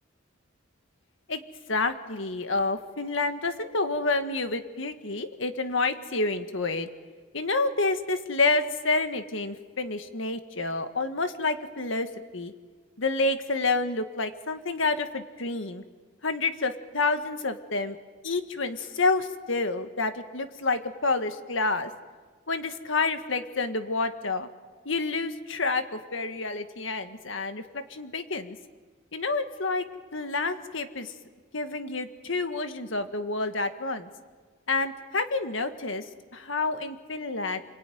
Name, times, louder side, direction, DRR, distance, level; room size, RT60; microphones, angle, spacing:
voice 1, 1.7-6.9 7.3-12.5 13.0-15.8 16.2-18.0 18.2-21.9 22.5-24.5 24.9-28.6 29.1-29.8 30.1-31.1 31.5-34.1 34.7-36.0 36.3-37.6, left 3 dB, 65° left, 8 dB, 1.8 m, -28 dB
29.5 x 21.5 x 9.5 m, 1.4 s
head